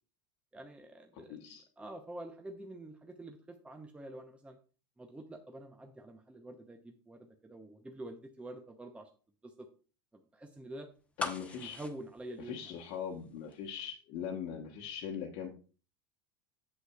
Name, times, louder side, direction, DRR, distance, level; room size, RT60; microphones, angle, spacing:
voice 1, 0.5-4.6 5.0-9.1 9.4-9.7 10.1-10.9 11.6-12.7, right 1 dB, 10° right, 5 dB, 0.7 m, -47 dB
voice 2, 1.1-1.6 11.2-11.8 12.4-15.5, left 8 dB, 55° left, -1 dB, 1.2 m, -41 dB
sound 1, 11.2-13.2 13.5-13.6, left 3 dB, 10° left, 1.0 m, -40 dB
7.8 x 7.6 x 2.3 m, 0.37 s
hypercardioid pair, 85°, 13 cm